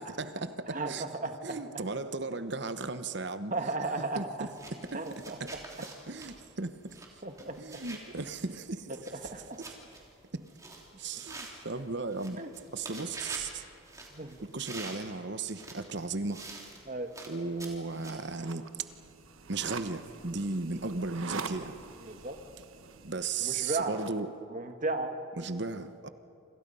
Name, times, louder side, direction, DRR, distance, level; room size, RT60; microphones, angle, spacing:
voice 1, 0.0-1.0 1.4-3.5 4.1-4.5 4.9-5.0 5.4-5.5 6.1-7.0 7.6-9.1 11.0-12.4 12.7-13.6 14.4-16.5 17.3-18.9 19.5-21.8 23.0-24.3 25.4-26.1, right 3 dB, 55° right, 1.0 m, -36 dB
voice 2, 0.7-1.6 3.5-4.5 4.9-5.4 7.2-7.8 9.1-9.6 12.4-12.5 14.1-14.4 16.8-17.1 22.0-22.4 23.4-24.0 24.5-25.1, right 3 dB, 40° right, 1.5 m, -35 dB
sound 1, 4.4-18.4, right 2 dB, 15° right, 3.1 m, -47 dB
sound 2, 18.3-24.2, right 4 dB, 85° right, 1.3 m, -44 dB
28.0 x 26.5 x 5.5 m
head